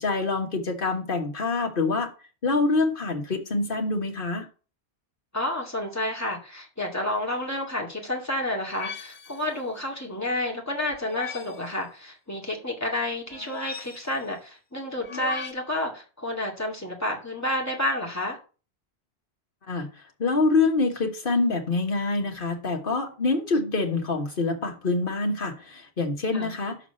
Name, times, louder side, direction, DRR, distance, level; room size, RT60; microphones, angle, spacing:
voice 1, 0.0-2.1 2.4-4.5 19.7-19.9 20.2-26.8, left 3 dB, 55° left, 3 dB, 1.7 m, -25 dB
voice 2, 5.3-18.4 26.3-26.5, left 1 dB, 15° left, -1 dB, 2.2 m, -30 dB
sound 1, 8.7-9.5 10.9-11.7 13.3-14.2 15.0-15.5, left 5 dB, 85° left, 1.4 m, -37 dB
6.7 x 4.9 x 6.8 m, 0.35 s
omnidirectional pair, 1.1 m